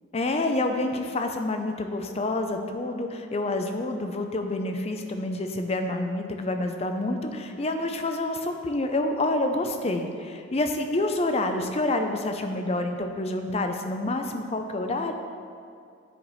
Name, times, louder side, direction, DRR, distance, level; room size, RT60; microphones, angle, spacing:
voice 1, 0.1-15.1, left 2 dB, 30° left, 6 dB, 0.5 m, -28 dB
8.8 x 4.9 x 4.0 m, 2.4 s
head